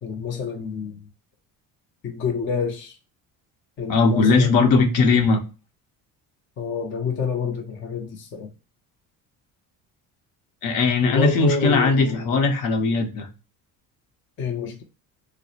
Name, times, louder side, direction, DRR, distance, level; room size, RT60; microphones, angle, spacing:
voice 1, 0.0-0.9 2.0-3.0 3.8-4.8 6.6-8.5 11.0-12.4 14.4-14.8, left 5 dB, 35° left, 0.4 m, -28 dB
voice 2, 3.9-5.4 10.6-13.3, left 4 dB, 60° left, 0.7 m, -19 dB
2.3 x 2.0 x 2.7 m
cardioid pair, 110°, 38 cm